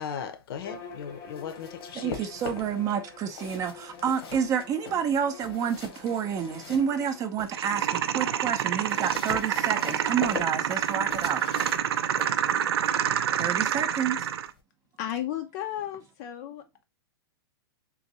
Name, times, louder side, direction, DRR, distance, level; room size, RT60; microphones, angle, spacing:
voice 1, 0.0-2.3, left 7 dB, 65° left, 0.8 m, -37 dB
Bowed string instrument, 0.6-7.3, left 5 dB, 25° left, 0.7 m, -47 dB
sound 1, 1.1-2.9 3.2-7.6 8.0-14.6, left 4 dB, 80° left, 1.1 m, -42 dB
voice 2, 1.9-7.9 8.1-11.4 13.4-14.3, right 8 dB, 25° right, 0.5 m, -29 dB
sound 2, 7.5-14.5, right 9 dB, 85° right, 0.4 m, -27 dB
voice 3, 15.0-16.6, left 11 dB, 45° left, 0.4 m, -33 dB
3.8 x 2.6 x 2.8 m
hypercardioid pair, 135°, 13 cm